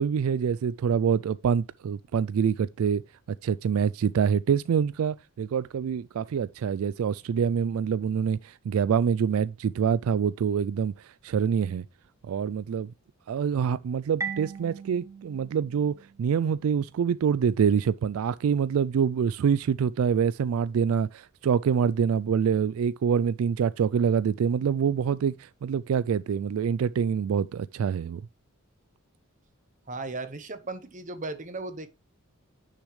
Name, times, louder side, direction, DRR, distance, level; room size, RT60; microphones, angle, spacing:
voice 1, 0.0-3.0 3.4-11.8 12.2-12.9 13.3-28.2, right 7 dB, 80° right, 0.3 m, -26 dB
Marimba xylophone, 14.2-16.8, right 5 dB, 15° right, 0.8 m, -39 dB
voice 2, 29.9-31.9, right 3 dB, 35° right, 1.2 m, -36 dB
10.0 x 6.4 x 3.1 m
head